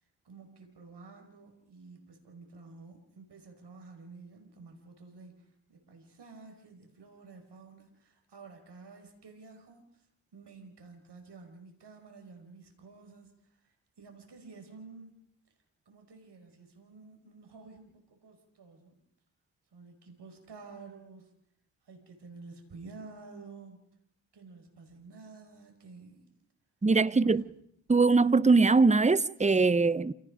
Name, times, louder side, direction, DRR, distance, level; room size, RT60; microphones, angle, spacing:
voice 1, 0.0-10.1 10.3-15.3 15.9-19.0 19.7-21.3 21.8-23.8 24.3-26.3 27.1-27.4, right 4 dB, 60° right, 5.3 m, -51 dB
voice 2, 26.8-27.4 27.9-30.1, right 4 dB, 15° right, 0.8 m, -22 dB
28.0 x 18.0 x 5.1 m
supercardioid pair, 45°, 45 cm